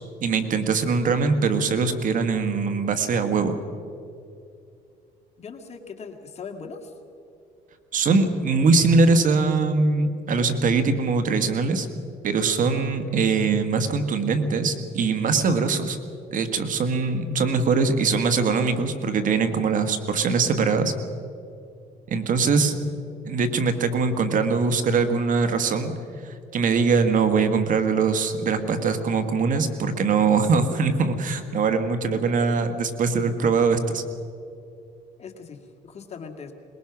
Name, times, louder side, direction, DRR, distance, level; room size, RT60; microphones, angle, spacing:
voice 1, 0.2-3.6 7.9-11.9 12.2-16.0 16.3-20.9 22.1-22.8 23.3-25.9 26.2-34.0, right 4 dB, 50° right, 9 dB, 1.7 m, -22 dB
voice 2, 5.4-6.9 35.2-36.5, left 5 dB, 40° left, 4 dB, 2.2 m, -40 dB
22.0 x 21.0 x 6.1 m, 2.5 s
cardioid pair, 110°, 17 cm